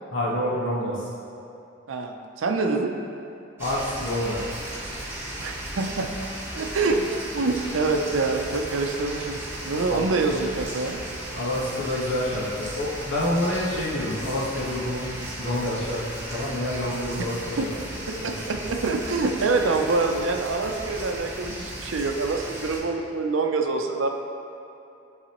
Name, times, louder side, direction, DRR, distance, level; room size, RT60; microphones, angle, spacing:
voice 1, 0.1-1.0 3.6-4.4 9.9-10.0 11.3-16.0 16.3-18.6, left 1 dB, 80° left, -9 dB, 1.4 m, -28 dB
voice 2, 1.9-2.9 5.4-6.1 6.6-7.1 7.3-9.4 9.6-11.0 17.6-17.7 18.1-24.1, right 3 dB, 80° right, 3 dB, 0.6 m, -25 dB
sound 1, 3.6-22.8, right 1 dB, 10° right, 1.2 m, -36 dB
11.5 x 4.0 x 3.0 m, 2.8 s
head